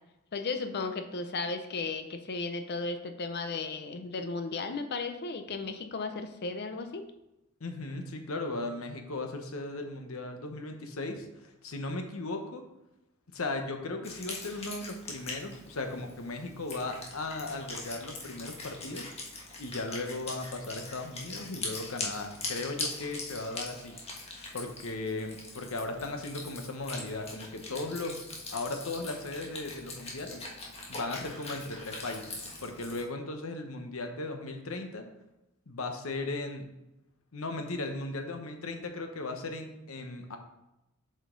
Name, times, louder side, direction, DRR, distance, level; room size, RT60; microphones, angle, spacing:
voice 1, 0.3-7.1, left 3 dB, 50° left, 8 dB, 0.6 m, -35 dB
voice 2, 7.6-12.6 13.3-19.0 19.6-24.0 24.5-28.2 28.5-30.4 30.9-35.1 35.7-36.7 37.3-40.4, left 2 dB, 80° left, 5 dB, 1.0 m, -37 dB
Wind instrument woodwind instrument, 14.0-33.0, left 2 dB, 30° left, 1.5 m, -42 dB
7.6 x 5.3 x 3.9 m, 0.92 s
head